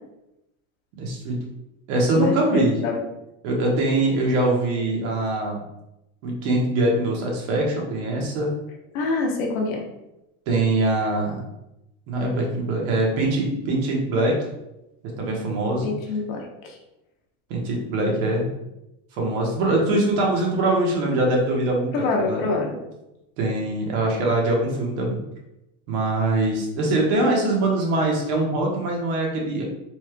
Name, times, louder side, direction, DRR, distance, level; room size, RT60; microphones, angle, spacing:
voice 1, 1.0-1.4 1.9-2.7 3.4-5.6 6.2-8.5 10.5-11.4 12.1-14.3 15.2-15.9 17.5-18.5 19.2-22.4 23.4-25.2 25.9-29.6, right 2 dB, 70° right, -1 dB, 1.4 m, -23 dB
voice 2, 2.2-3.0 8.9-9.8 15.8-16.8 18.0-18.4 21.9-22.8, left 3 dB, 70° left, 1 dB, 1.1 m, -26 dB
4.3 x 3.1 x 2.3 m, 0.91 s
supercardioid pair, 125°, 43 cm